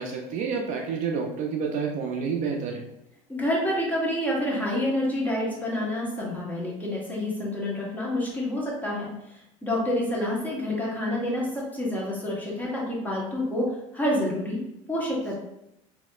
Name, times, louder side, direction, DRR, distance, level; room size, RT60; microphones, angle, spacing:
voice 1, 0.0-2.8, right 5 dB, 50° right, 1 dB, 0.5 m, -29 dB
voice 2, 3.3-14.6 14.9-15.4, left 1 dB, 10° left, -4 dB, 1.1 m, -28 dB
3.0 x 2.8 x 2.3 m, 0.85 s
supercardioid pair, 120°, 16 cm